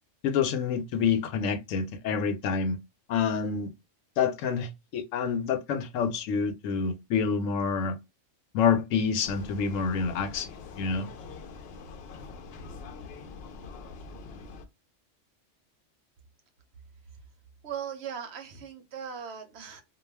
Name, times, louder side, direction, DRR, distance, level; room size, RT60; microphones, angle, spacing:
voice 1, 0.2-2.8 3.1-3.7 4.2-8.0 8.5-10.5 10.8-11.1, left 6 dB, 85° left, 1.0 m, -27 dB
Vehicle, 9.2-14.7, left 4 dB, 65° left, 0.7 m, -44 dB
voice 2, 17.6-19.8, right 8 dB, 65° right, 0.8 m, -38 dB
2.3 x 2.2 x 3.2 m
omnidirectional pair, 1.3 m